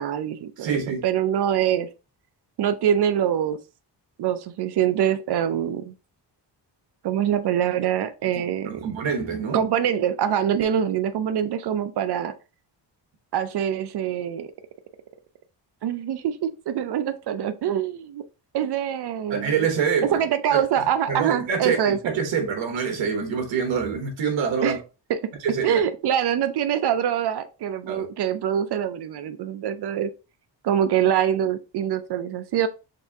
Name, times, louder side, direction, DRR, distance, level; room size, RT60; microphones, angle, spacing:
voice 1, 0.0-0.8 1.0-1.9 2.6-3.6 4.2-5.9 7.0-9.0 9.5-12.3 13.3-14.5 15.8-18.2 18.5-19.5 20.1-22.0 24.6-24.8 25.1-25.2 25.6-30.1 30.6-32.7, right 9 dB, 65° right, 0.5 m, -24 dB
voice 2, 0.6-1.0 8.6-9.6 19.3-20.2 20.5-24.8 25.4-25.7 27.9-28.0, right 6 dB, 90° right, 1.2 m, -26 dB
4.1 x 2.6 x 3.4 m
wide cardioid pair, 130°, 43 cm